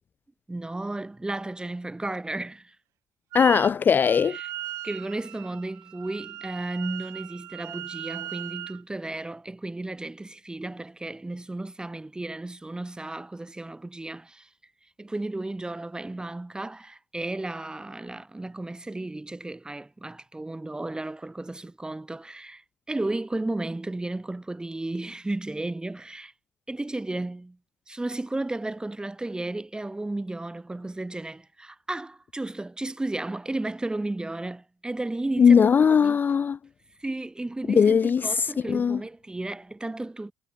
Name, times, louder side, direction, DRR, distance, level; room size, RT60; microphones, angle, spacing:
voice 1, 0.5-2.8 4.3-4.5 4.8-14.5 15.0-26.3 26.7-27.6 27.9-36.2 37.0-40.3, right 2 dB, 15° right, 2.1 m, -34 dB
voice 2, 3.3-4.4 35.4-36.6 37.7-39.0, left 6 dB, 35° left, 0.3 m, -19 dB
Wind instrument woodwind instrument, 3.3-3.7 4.0-8.8, right 14 dB, 65° right, 5.8 m, -38 dB
hypercardioid pair, 55°, 5 cm